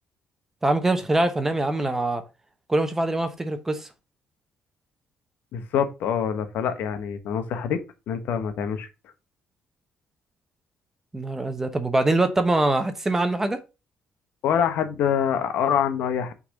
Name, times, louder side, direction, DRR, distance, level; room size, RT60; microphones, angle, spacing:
voice 1, 0.6-2.2 2.7-3.9 11.1-13.6, right 2 dB, 10° right, 0.9 m, -23 dB
voice 2, 5.5-7.8 8.1-8.9 14.4-16.3, left 8 dB, 80° left, 1.2 m, -25 dB
5.8 x 4.1 x 5.1 m
cardioid pair, 150°, 3 cm